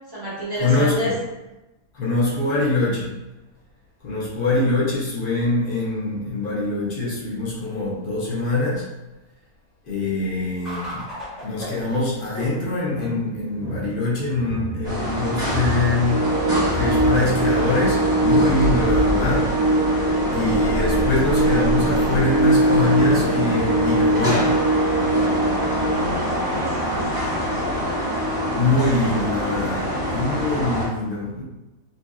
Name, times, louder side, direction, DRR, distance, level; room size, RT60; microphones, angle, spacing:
voice 1, 0.1-1.2 25.8-27.7, equal, 35° right, -9 dB, 0.3 m, -31 dB
voice 2, 0.6-1.1 1.9-3.1 4.0-8.9 9.9-11.0 11.4-16.3 16.7-19.5 20.3-24.5 28.6-31.4, left 2 dB, 50° left, -6 dB, 0.6 m, -23 dB
sound 1, 10.6-23.2, equal, ahead, 1.1 m, -31 dB
sound 2, 14.8-30.9, equal, 20° right, 0.8 m, -26 dB
sound 3, 16.1-26.0, right 1 dB, 85° right, 1.1 m, -21 dB
2.7 x 2.6 x 2.3 m, 1.0 s
omnidirectional pair, 1.6 m